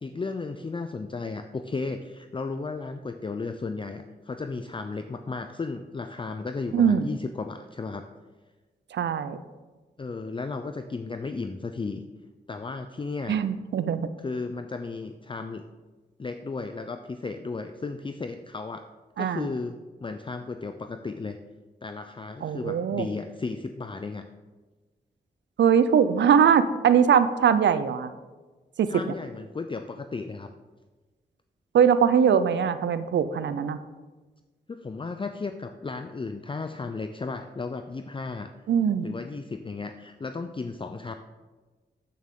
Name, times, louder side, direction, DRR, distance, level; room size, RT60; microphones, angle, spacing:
voice 1, 0.0-8.1 10.0-12.0 12.5-13.4 14.2-15.6 16.2-18.9 19.2-21.4 21.8-24.3 28.9-30.5 34.7-38.5 39.0-41.1, left 4 dB, 30° left, 8 dB, 0.5 m, -34 dB
voice 2, 6.7-7.1 8.9-9.4 13.3-14.1 19.2-19.5 22.4-23.1 25.6-28.1 28.8-28.9 31.7-33.8 38.7-39.1, right 7 dB, 85° right, 12 dB, 0.5 m, -21 dB
9.3 x 8.7 x 3.7 m, 1.3 s
cardioid pair, 65°, 18 cm